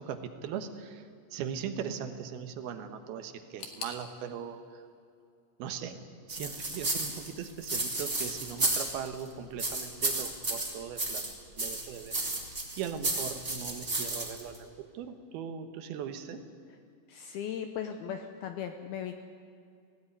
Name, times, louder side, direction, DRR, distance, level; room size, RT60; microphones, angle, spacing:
voice 1, 0.0-4.8 5.6-12.2 12.8-14.7 14.9-16.4, right 8 dB, 70° right, 8 dB, 2.7 m, -39 dB
sound 1, 3.6-6.5 6.7-7.5 7.8-7.9 8.8-8.9, left 5 dB, 50° left, 2.7 m, -48 dB
sound 2, 6.3-9.2 9.6-11.3 11.6-14.6, right 2 dB, 15° right, 2.3 m, -32 dB
voice 2, 17.1-19.2, left 8 dB, 80° left, 6 dB, 2.3 m, -37 dB
19.0 x 16.5 x 9.7 m, 2.4 s
omnidirectional pair, 5.4 m